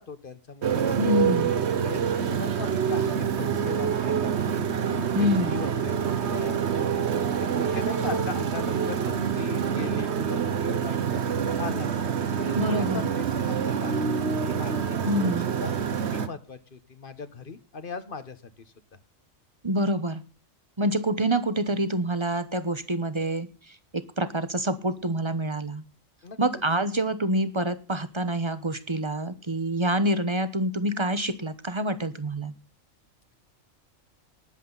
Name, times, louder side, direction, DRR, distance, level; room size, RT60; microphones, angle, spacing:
voice 1, 0.0-1.1 1.5-4.7 5.2-6.6 7.3-11.9 12.4-14.0 14.4-15.3 15.6-18.7 26.2-26.4, left 4 dB, 45° left, 12 dB, 1.3 m, -39 dB
Motorcycle, 0.6-16.3, right 7 dB, 60° right, 1.3 m, -26 dB
voice 2, 1.0-1.5 5.1-5.6 12.6-13.0 15.1-15.5 19.6-20.2 20.8-23.5 23.9-25.8 26.4-32.5, right 1 dB, 25° right, 13 dB, 0.9 m, -26 dB
19.5 x 7.8 x 4.0 m, 0.34 s
omnidirectional pair, 1.4 m